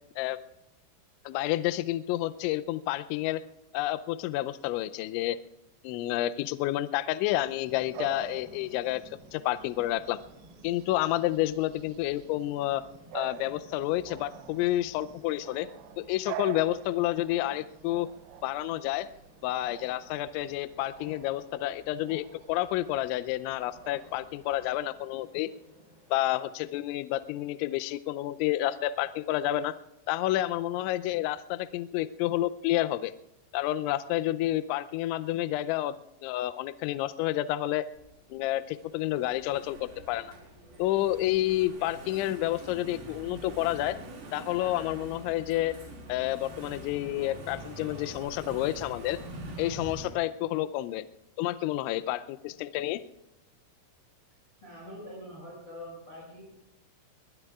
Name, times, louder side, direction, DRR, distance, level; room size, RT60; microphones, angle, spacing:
voice 1, 1.3-3.4 3.7-5.4 5.8-10.2 10.6-12.8 13.1-15.7 16.0-18.1 18.4-19.1 19.4-25.5 26.1-29.7 30.1-33.1 33.5-36.0 36.2-37.9 38.3-40.3 40.8-44.0 44.3-45.8 46.1-49.2 49.6-51.0 51.4-53.0, left 15 dB, 85° left, 12 dB, 2.7 m, -29 dB
Bark / Bird vocalization bird call bird song, 7.3-24.8, right 12 dB, 90° right, 2.6 m, -47 dB
sound 1, 7.6-26.3, right 1 dB, 10° right, 3.3 m, -57 dB
Engine / Mechanisms, 37.9-50.1, right 1 dB, 50° right, 5.1 m, -45 dB
voice 2, 54.6-56.4, left 1 dB, 25° left, -7 dB, 7.1 m, -44 dB
21.5 x 21.0 x 2.4 m, 0.89 s
omnidirectional pair, 5.9 m